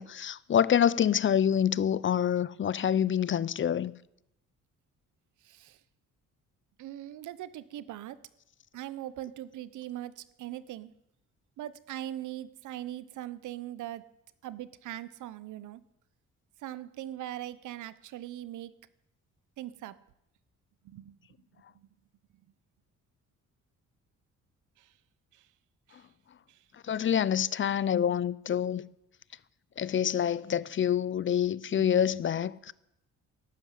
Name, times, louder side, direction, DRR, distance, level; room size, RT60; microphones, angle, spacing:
voice 1, 0.0-3.9 26.9-28.8 29.8-32.7, left 9 dB, 40° left, 0.6 m, -27 dB
voice 2, 5.4-5.8 6.8-8.3 8.7-10.9 11.6-14.1 14.4-15.8 16.6-18.7 19.6-20.0 20.8-21.2 21.7-21.9 24.8-24.9 25.3-25.4 26.5-26.6 31.7-31.9, right 13 dB, 80° right, 0.9 m, -41 dB
12.5 x 11.5 x 9.3 m
cardioid pair, 90°, 30 cm